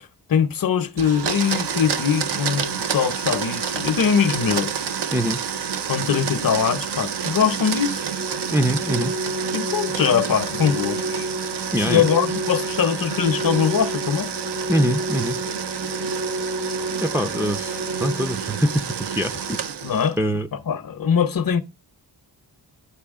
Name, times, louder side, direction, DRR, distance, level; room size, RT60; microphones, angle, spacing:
voice 1, 0.3-4.7 5.9-8.0 9.5-11.3 11.8-14.3 19.8-20.2 20.5-21.6, left 7 dB, 50° left, 0.8 m, -22 dB
Domestic sounds home sounds, 1.0-20.2, right 7 dB, 70° right, 0.8 m, -29 dB
Organ, 8.1-19.1, right 2 dB, 35° right, 0.8 m, -31 dB
voice 2, 8.5-9.1 11.7-12.1 14.7-15.4 17.0-19.6 20.2-20.5, equal, 5° right, 0.5 m, -23 dB
11.5 x 4.7 x 3.6 m
wide cardioid pair, 125°, 42 cm